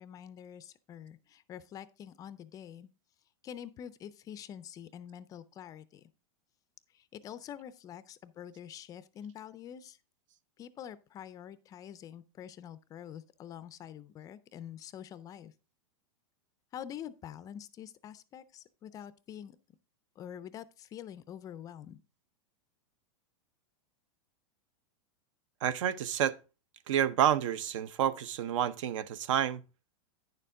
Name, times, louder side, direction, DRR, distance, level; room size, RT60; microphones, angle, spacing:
voice 1, 0.0-2.9 3.4-6.0 6.9-10.0 10.6-15.5 16.7-19.6 20.2-22.0, left 9 dB, 20° left, 0.4 m, -46 dB
voice 2, 25.6-26.4 26.9-29.6, right 10 dB, 70° right, 0.6 m, -29 dB
9.7 x 6.8 x 3.6 m
supercardioid pair, 150°, 17 cm